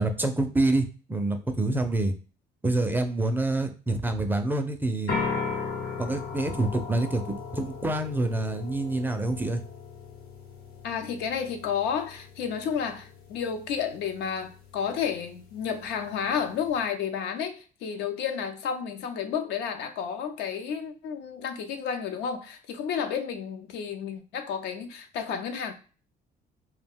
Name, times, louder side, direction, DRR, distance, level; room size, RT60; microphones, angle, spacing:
voice 1, 0.0-2.1 2.6-5.1 6.0-9.6, right 2 dB, 10° right, 6 dB, 0.4 m, -27 dB
sound 1, 5.1-16.8, left 5 dB, 70° left, 0.9 m, -38 dB
voice 2, 10.8-25.7, left 7 dB, 85° left, 6 dB, 0.5 m, -31 dB
2.4 x 2.2 x 3.4 m, 0.36 s
cardioid pair, 110°, 17 cm